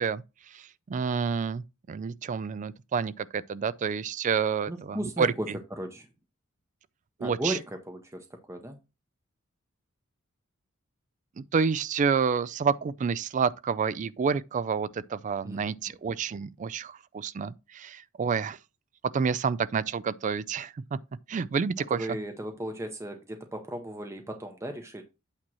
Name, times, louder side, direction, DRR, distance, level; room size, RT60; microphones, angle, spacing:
voice 1, 0.0-5.3 7.2-7.6 11.4-18.6 19.1-21.0 21.3-22.1, right 6 dB, 35° right, 0.3 m, -29 dB
voice 2, 4.7-6.1 7.2-8.8 15.4-15.8 21.9-25.0, right 1 dB, 15° right, 0.7 m, -36 dB
8.6 x 2.9 x 6.1 m
head